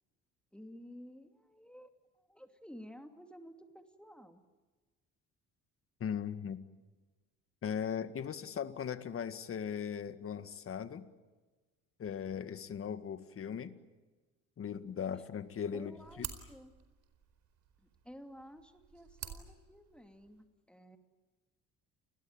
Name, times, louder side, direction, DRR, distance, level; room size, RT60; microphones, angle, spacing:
voice 1, 0.5-4.4 15.1-15.3 15.7-16.7 17.8-21.0, equal, 5° left, 6 dB, 2.6 m, -53 dB
voice 2, 6.0-6.6 7.6-11.1 12.0-13.7 14.6-16.3, left 7 dB, 45° left, 11 dB, 1.9 m, -38 dB
sound 1, 15.4-20.4, right 9 dB, 60° right, 4.5 m, -50 dB
29.5 x 20.5 x 9.0 m, 1.3 s
cardioid pair, 95°, 31 cm